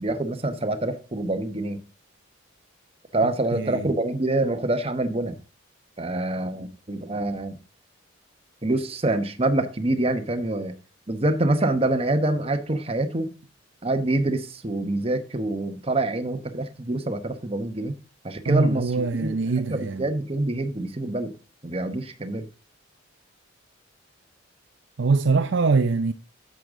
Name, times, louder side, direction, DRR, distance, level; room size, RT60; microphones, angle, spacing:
voice 1, 0.0-1.8 3.1-5.4 6.0-7.6 8.6-10.8 11.1-13.3 13.8-17.9 18.2-19.3 19.7-21.3 21.6-22.5, right 2 dB, 30° right, 1.0 m, -26 dB
voice 2, 3.5-3.9 18.5-20.1 25.0-26.1, right 4 dB, 60° right, 0.5 m, -23 dB
10.5 x 7.8 x 3.7 m
head